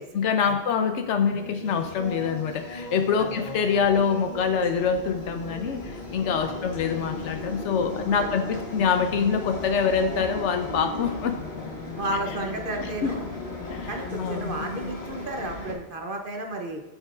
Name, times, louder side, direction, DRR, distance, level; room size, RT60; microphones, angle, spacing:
voice 1, 0.1-11.4 13.0-13.1 13.7-13.9 14.2-14.7, left 6 dB, 80° left, 7 dB, 0.9 m, -25 dB
Singing / Musical instrument, 1.0-11.1, left 1 dB, 40° left, 0.8 m, -40 dB
sound 1, 1.7-15.7, left 3 dB, 60° left, 1.5 m, -37 dB
voice 2, 12.0-13.3 13.9-16.8, right 2 dB, 50° right, 3 dB, 0.9 m, -32 dB
13.0 x 5.4 x 2.4 m, 1.1 s
omnidirectional pair, 1.2 m